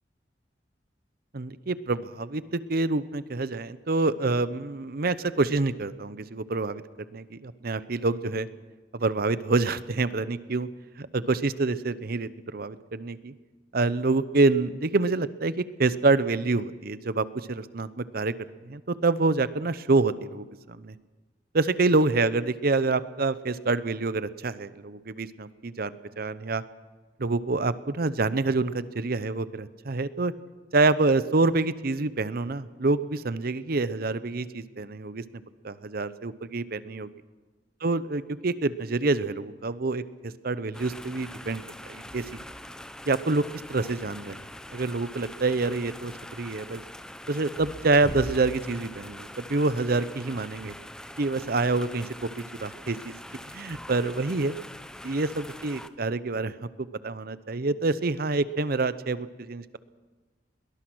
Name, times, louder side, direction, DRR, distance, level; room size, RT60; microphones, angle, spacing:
voice 1, 1.3-6.8 7.1-8.5 8.9-10.7 11.0-13.3 13.7-18.3 18.7-20.9 21.5-26.6 27.2-30.3 30.7-35.2 35.6-37.1 37.8-40.0 40.4-42.4 43.1-43.4 43.7-44.4 44.7-46.8 47.3-50.7 51.2-52.1 52.6-53.1 53.5-54.6 55.0-56.5 57.0-59.8, right 3 dB, 60° right, 15 dB, 0.8 m, -27 dB
sound 1, 40.7-55.9, left 1 dB, 5° left, 0.8 m, -43 dB
22.0 x 19.0 x 6.2 m, 1.3 s
head